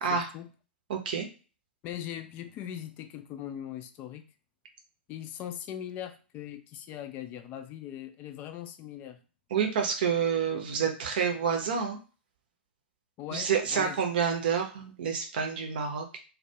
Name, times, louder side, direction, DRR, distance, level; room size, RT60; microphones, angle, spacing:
voice 1, 0.1-0.5 1.8-4.2 5.1-9.2 10.7-10.8 13.2-14.0, left 10 dB, 30° left, 9 dB, 0.4 m, -40 dB
voice 2, 0.9-1.3 9.5-12.0 13.3-16.2, right 6 dB, 55° right, 4 dB, 0.6 m, -28 dB
2.2 x 2.2 x 2.8 m, 0.36 s
figure-of-eight pair, 100°, 6 cm